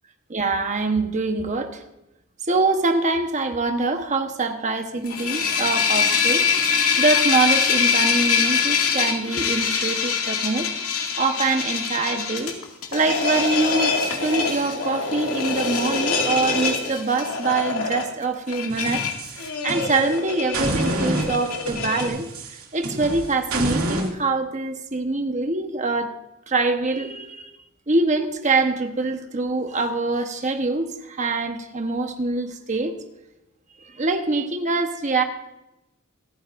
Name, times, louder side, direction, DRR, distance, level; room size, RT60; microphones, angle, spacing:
voice 1, 0.3-1.8 2.5-6.4 7.0-10.7 11.2-12.5 12.9-19.0 19.4-22.3 22.7-26.1 26.5-27.5 27.9-32.9 33.8-35.2, right 3 dB, 35° right, 6 dB, 1.1 m, -24 dB
sound 1, 4.9-22.1, left 5 dB, 90° left, 2.3 m, -24 dB
sound 2, 18.7-20.1 20.5-24.1, right 1 dB, 85° right, 2.5 m, -28 dB
26.0 x 9.4 x 2.6 m, 0.92 s
head